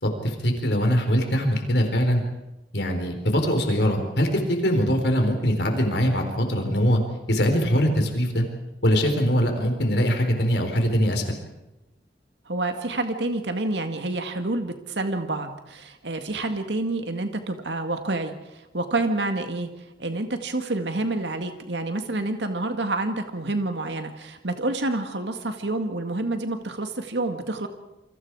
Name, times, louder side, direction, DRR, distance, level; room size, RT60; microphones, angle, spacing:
voice 1, 0.0-2.2 2.7-7.0 7.3-8.4 8.8-11.4, equal, 70° left, 5 dB, 4.2 m, -22 dB
voice 2, 12.5-19.7 20.0-27.7, right 2 dB, 80° right, 6 dB, 1.9 m, -28 dB
28.0 x 25.0 x 4.8 m, 0.97 s
head